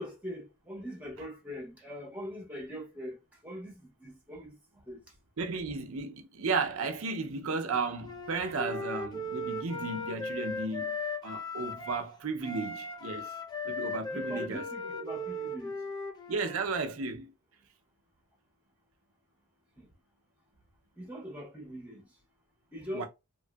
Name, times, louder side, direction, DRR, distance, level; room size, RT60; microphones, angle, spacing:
voice 1, 0.0-3.2 3.4-5.0 14.1-15.9 19.8-19.9 21.0-22.0 22.7-23.0, equal, 5° right, 1.0 m, -42 dB
voice 2, 5.4-11.0 11.2-13.3 13.6-14.6 16.3-17.3 22.9-23.0, right 4 dB, 70° right, 0.5 m, -34 dB
Wind instrument woodwind instrument, 8.0-12.1 12.4-16.7, left 2 dB, 20° left, 0.3 m, -37 dB
3.0 x 2.6 x 2.2 m
head